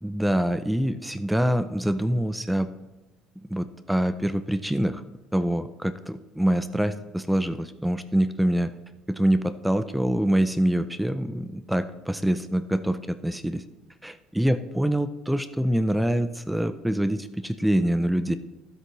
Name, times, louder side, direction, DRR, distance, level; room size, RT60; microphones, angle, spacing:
voice 1, 0.0-2.7 3.5-5.0 5.3-8.7 9.1-13.6 14.0-18.4, right 1 dB, 5° right, 12 dB, 0.4 m, -25 dB
13.0 x 8.0 x 3.1 m, 1.1 s
cardioid pair, 145°, 0 cm